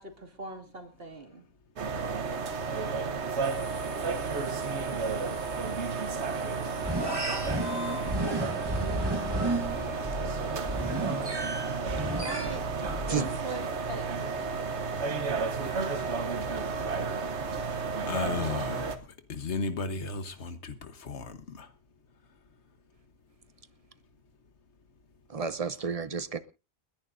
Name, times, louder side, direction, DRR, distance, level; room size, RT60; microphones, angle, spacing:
voice 1, 0.0-1.4 12.0-12.6 13.0-14.1, right 3 dB, 60° right, 2.7 m, -41 dB
sound 1, 1.8-19.0, right 4 dB, 80° right, 1.4 m, -32 dB
sound 2, 3.4-10.1, left 1 dB, 60° left, 6.7 m, -53 dB
sound 3, 6.8-13.3, right 1 dB, 20° right, 1.6 m, -33 dB
voice 2, 9.1-10.4 10.9-12.3 14.5-15.2 15.6-16.6 17.6-19.0 19.3-21.7, left 4 dB, 85° left, 1.5 m, -38 dB
voice 3, 10.2-10.6 11.0-11.2 13.1-13.3 25.3-26.4, right 5 dB, 35° right, 0.8 m, -33 dB
30.0 x 10.5 x 2.6 m
omnidirectional pair, 1.1 m